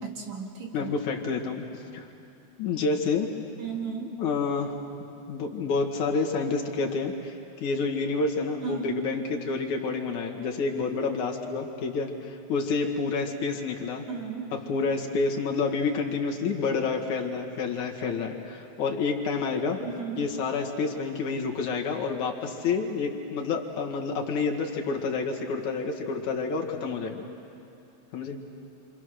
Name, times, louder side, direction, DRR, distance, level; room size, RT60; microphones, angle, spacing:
voice 1, 0.0-0.9 3.6-4.2 8.6-9.0 14.1-14.5 19.8-20.3, right 6 dB, 65° right, 0 dB, 3.5 m, -35 dB
voice 2, 0.7-1.7 1.9-2.0 2.6-3.3 4.0-4.7 5.3-14.1 14.5-19.8 20.2-27.3 28.1-28.4, left 4 dB, 75° left, 0 dB, 3.2 m, -29 dB
28.5 x 26.0 x 6.4 m, 2.6 s
omnidirectional pair, 3.5 m